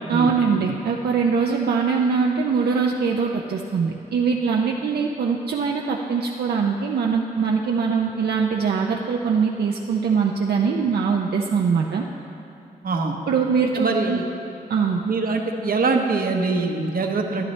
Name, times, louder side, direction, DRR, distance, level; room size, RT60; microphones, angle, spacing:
voice 1, 0.1-12.1 13.3-14.2 14.7-15.0, right 5 dB, 80° right, 0 dB, 0.6 m, -22 dB
voice 2, 12.8-13.2 13.7-14.2 15.0-17.4, right 3 dB, 65° right, 3 dB, 0.9 m, -23 dB
11.5 x 11.0 x 3.2 m, 2.8 s
cardioid pair, 80°, 16 cm